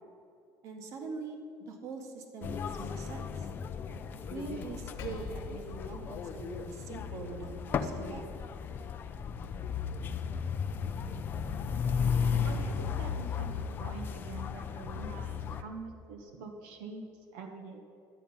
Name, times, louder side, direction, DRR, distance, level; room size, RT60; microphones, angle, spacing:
voice 1, 0.6-3.5 4.3-8.2, right 4 dB, 50° right, 4 dB, 1.5 m, -43 dB
sound 1, 2.4-15.6, left 6 dB, 30° left, 0.5 m, -35 dB
Percussion, 5.0-9.8, left 3 dB, 55° left, 1.2 m, -50 dB
voice 2, 12.4-17.8, right 4 dB, 90° right, 3 dB, 1.2 m, -45 dB
11.5 x 8.7 x 5.5 m, 2.7 s
cardioid pair, 160°, 7 cm